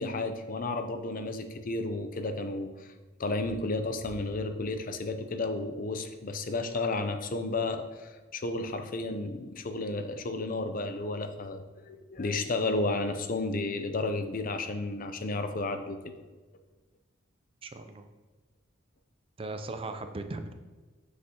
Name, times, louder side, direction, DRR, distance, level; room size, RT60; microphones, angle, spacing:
voice 1, 0.0-2.9 3.2-16.0, left 2 dB, 45° left, 8 dB, 0.6 m, -32 dB
voice 2, 17.6-18.1 19.4-20.5, right 2 dB, 30° right, 8 dB, 0.5 m, -38 dB
7.6 x 6.5 x 2.9 m, 1.3 s
head